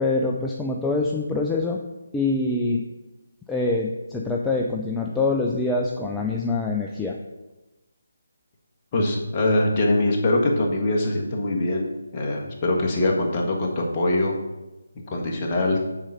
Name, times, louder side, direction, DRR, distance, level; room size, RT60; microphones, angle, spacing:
voice 1, 0.0-1.8 2.1-2.9 3.5-7.2, left 3 dB, 5° left, -1 dB, 0.5 m, -25 dB
voice 2, 8.9-11.9 12.1-14.3 15.1-15.8, left 1 dB, 25° left, -1 dB, 1.5 m, -23 dB
7.4 x 4.8 x 6.8 m, 1.1 s
figure-of-eight pair, 155°, 0 cm